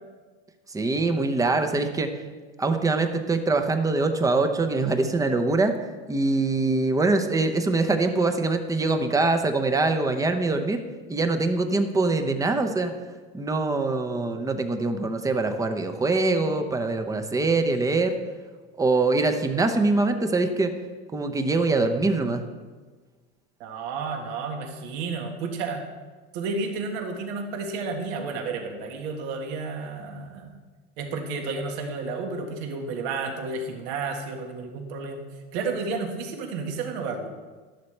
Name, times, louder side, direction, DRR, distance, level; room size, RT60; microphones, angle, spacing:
voice 1, 0.7-2.1 2.6-5.7 6.1-10.8 11.1-12.9 13.3-18.1 18.7-20.7 21.1-22.4, right 3 dB, 10° right, 6 dB, 0.8 m, -23 dB
voice 2, 23.6-25.8 26.3-30.6 31.0-35.2 35.5-37.3, right 4 dB, 70° right, 3 dB, 1.7 m, -31 dB
12.5 x 11.5 x 3.3 m, 1.4 s
supercardioid pair, 135°, 32 cm